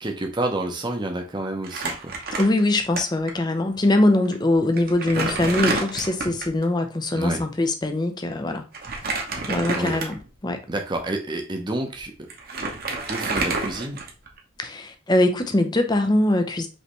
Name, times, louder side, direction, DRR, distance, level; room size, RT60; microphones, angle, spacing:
voice 1, 0.0-2.4 7.2-7.4 9.8-10.0 10.7-12.1 13.1-14.0, right 2 dB, 20° right, 0.8 m, -29 dB
Crumpling crinkling, 1.6-3.0 3.3-3.4 4.2-4.3 4.8-6.6 8.7-10.3 10.9-11.1 12.0-12.1 12.3-14.4, right 3 dB, 45° right, 1.0 m, -28 dB
voice 2, 2.4-8.6 9.5-10.6 14.6-16.7, left 1 dB, 20° left, 0.5 m, -22 dB
5.3 x 3.3 x 3.1 m
head